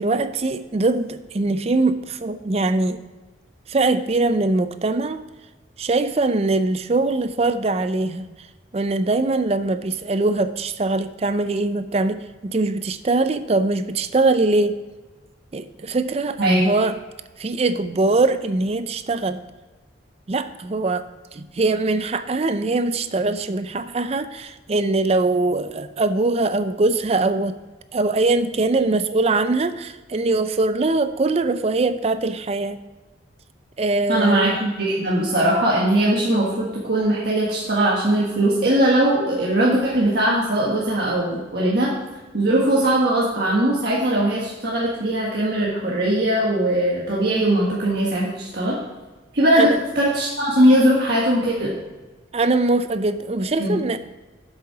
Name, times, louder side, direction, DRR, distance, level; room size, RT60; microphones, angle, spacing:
voice 1, 0.0-3.0 3.7-5.2 5.8-8.3 8.7-14.8 15.5-16.9 17.4-19.4 20.3-27.5 27.9-32.8 33.8-34.6 49.6-49.8 52.3-54.0, right 2 dB, 35° right, 12 dB, 0.4 m, -22 dB
voice 2, 34.1-41.9 42.3-48.8 49.3-49.7 49.9-51.7 53.6-53.7, right 1 dB, 55° right, -5 dB, 1.6 m, -20 dB
7.7 x 7.5 x 4.8 m, 1.2 s
head